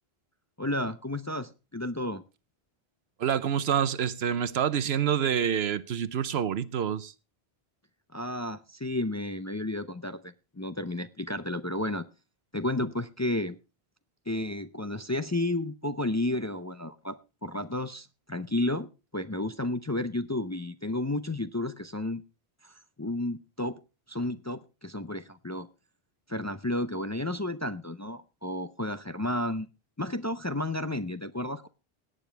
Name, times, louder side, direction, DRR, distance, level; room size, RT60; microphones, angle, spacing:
voice 1, 0.6-2.2 8.1-12.1 12.5-13.6 14.3-18.9 19.1-22.2 22.6-23.8 24.1-25.7 26.3-29.7 30.0-31.7, left 1 dB, 25° left, 0.4 m, -32 dB
voice 2, 3.2-7.1, right 8 dB, 90° right, 1.1 m, -27 dB
17.5 x 9.3 x 3.4 m
omnidirectional pair, 1.0 m